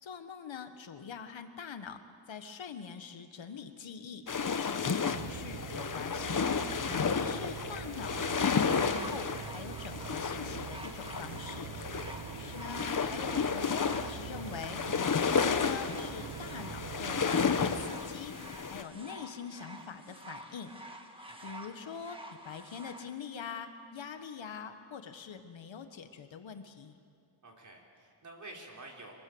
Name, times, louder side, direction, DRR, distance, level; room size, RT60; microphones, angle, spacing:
voice 1, 0.0-2.0 2.3-4.2 4.6-6.5 7.1-11.7 12.5-14.8 15.1-18.3 18.7-20.8 21.4-27.0, left 6 dB, 65° left, 8 dB, 1.6 m, -44 dB
sound 1, 4.3-18.8, left 5 dB, 40° left, 1.2 m, -32 dB
sound 2, 5.1-17.9, right 8 dB, 80° right, 1.5 m, -44 dB
sound 3, 8.5-23.1 24.0-24.1, right 1 dB, 10° right, 1.8 m, -49 dB
voice 2, 12.2-12.5 21.3-21.6 27.4-29.1, right 2 dB, 35° right, 0 dB, 4.2 m, -51 dB
26.5 x 21.0 x 8.0 m, 2.3 s
wide cardioid pair, 130°, 48 cm